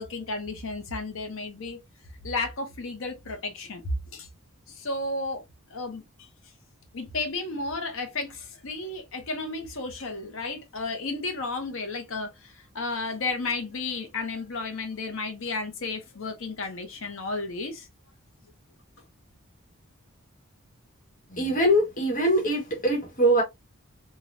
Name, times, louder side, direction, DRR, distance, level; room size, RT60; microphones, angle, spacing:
voice 1, 0.0-1.8 2.2-3.8 4.1-4.3 4.8-5.4 5.7-6.0 6.9-17.9, left 3 dB, 60° left, 0.7 m, -33 dB
voice 2, 21.3-23.4, right 1 dB, 35° left, 1.1 m, -23 dB
3.2 x 2.2 x 2.5 m
head